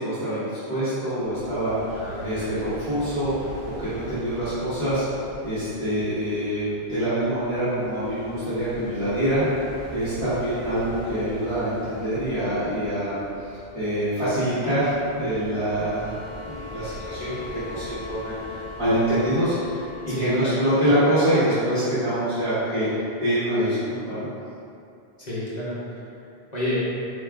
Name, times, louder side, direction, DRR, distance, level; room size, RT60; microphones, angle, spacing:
voice 1, 0.0-3.3 3.6-5.0 5.4-9.6 9.9-13.2 13.7-22.9 23.2-24.3, right 1 dB, 30° right, -17 dB, 1.3 m, -25 dB
sound 1, 1.2-20.1, equal, 10° left, 1.1 m, -43 dB
voice 2, 2.0-2.6 20.1-20.7 25.2-26.0 26.5-26.9, left 1 dB, 45° left, -9 dB, 1.0 m, -29 dB
sound 2, 15.6-20.3, left 6 dB, 60° left, 0.7 m, -40 dB
4.9 x 4.4 x 2.4 m, 2.6 s
omnidirectional pair, 1.1 m